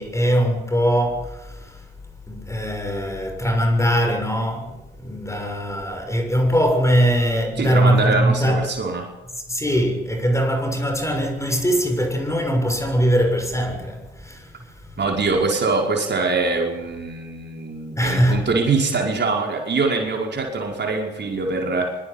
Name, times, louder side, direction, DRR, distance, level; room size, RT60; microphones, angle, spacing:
voice 1, 0.0-1.8 2.3-8.7 9.5-14.5 14.8-14.9 18.0-18.5, equal, 10° left, 6.7 m, -21 dB
voice 2, 7.6-9.1 15.0-22.0, right 3 dB, 35° right, 5.3 m, -23 dB
25.0 x 22.0 x 5.5 m
figure-of-eight pair, 50°, 29 cm